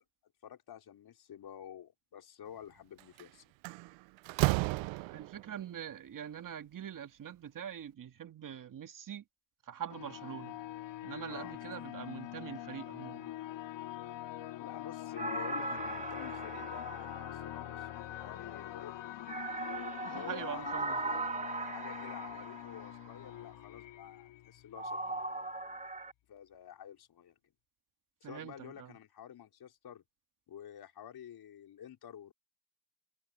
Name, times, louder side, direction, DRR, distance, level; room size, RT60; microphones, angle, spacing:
voice 1, 0.2-3.4 11.3-11.6 14.6-19.0 20.0-21.1 21.7-25.2 26.3-27.3 28.2-30.0 30.5-32.3, left 9 dB, 55° left, 5.0 m, -49 dB
Slam, 3.0-3.2 3.6-5.5, right 23 dB, 85° right, 0.6 m, -32 dB
voice 2, 4.6-9.2 9.6-10.6 11.0-13.3 20.0-21.0 28.2-28.9, right 9 dB, 45° right, 2.1 m, -44 dB
sound 1, 9.9-25.2, left 13 dB, 70° left, 3.2 m, -44 dB
sound 2, 15.2-18.0 19.3-23.1 24.8-26.1, right 3 dB, 15° right, 2.1 m, -39 dB
cardioid pair, 90°, 44 cm